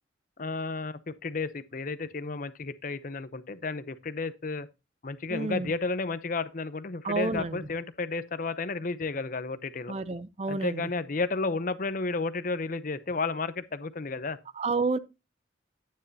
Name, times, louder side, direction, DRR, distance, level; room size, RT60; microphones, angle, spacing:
voice 1, 0.4-4.7 5.0-9.9 10.5-14.4, left 3 dB, 45° left, 0.7 m, -32 dB
voice 2, 5.3-5.7 7.0-7.6 9.9-10.8 14.6-15.0, right 3 dB, 35° right, 0.5 m, -30 dB
9.9 x 9.7 x 2.7 m
head